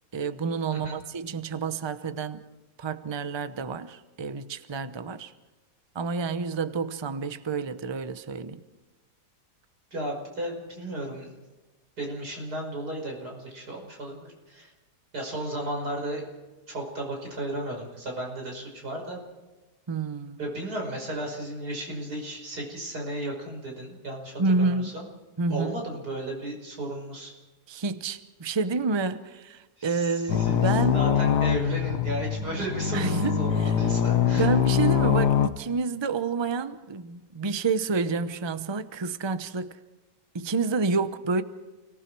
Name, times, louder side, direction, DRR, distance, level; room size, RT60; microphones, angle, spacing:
voice 1, 0.1-2.4 2.8-5.3 5.9-8.6 19.9-20.4 24.4-24.9 25.4-25.8 27.7-31.0 32.9-33.7 34.3-39.7 40.3-41.4, right 4 dB, 25° right, 0.6 m, -29 dB
voice 2, 9.9-11.3 12.0-14.7 15.1-16.2 16.7-19.2 20.4-25.1 25.5-27.3 29.8-30.6 30.9-34.5, right 1 dB, 75° right, 6.1 m, -34 dB
sound 1, 30.3-35.5, left 9 dB, 85° left, 1.6 m, -23 dB
29.5 x 19.0 x 4.7 m
omnidirectional pair, 1.7 m